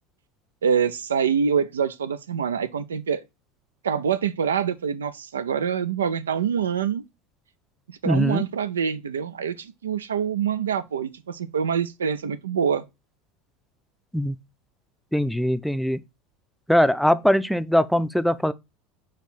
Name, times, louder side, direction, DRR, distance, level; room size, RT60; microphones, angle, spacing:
voice 1, 0.6-3.2 3.8-7.0 7.9-12.8, right 7 dB, 80° right, 0.5 m, -25 dB
voice 2, 8.1-8.4 14.1-14.4 15.1-16.0 16.7-18.5, equal, ahead, 0.5 m, -21 dB
6.5 x 3.0 x 5.5 m
figure-of-eight pair, 75°, 0 cm